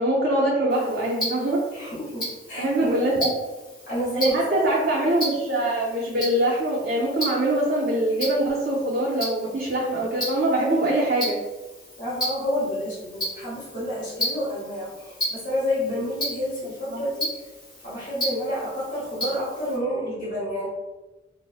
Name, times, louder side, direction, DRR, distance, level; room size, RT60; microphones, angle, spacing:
voice 1, 0.0-1.6 2.5-3.3 4.1-11.4 16.9-17.0, right 1 dB, 50° right, -5 dB, 0.4 m, -23 dB
Tick-tock, 0.7-19.8, equal, 20° left, 0.8 m, -35 dB
voice 2, 1.7-3.1 3.9-4.7 12.0-17.3 17.8-20.7, equal, 40° left, -9 dB, 1.2 m, -29 dB
3.3 x 2.0 x 2.3 m, 1.1 s
head